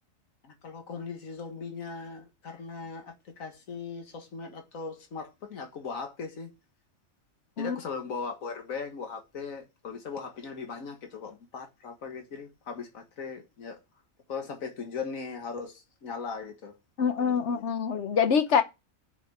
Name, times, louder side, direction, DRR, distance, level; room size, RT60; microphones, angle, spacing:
voice 1, 0.4-6.5 7.6-13.8 14.3-16.8 17.2-17.6, left 5 dB, 85° left, 1.9 m, -39 dB
voice 2, 17.0-18.6, left 6 dB, 60° left, 1.3 m, -25 dB
6.9 x 6.0 x 7.1 m
omnidirectional pair, 1.4 m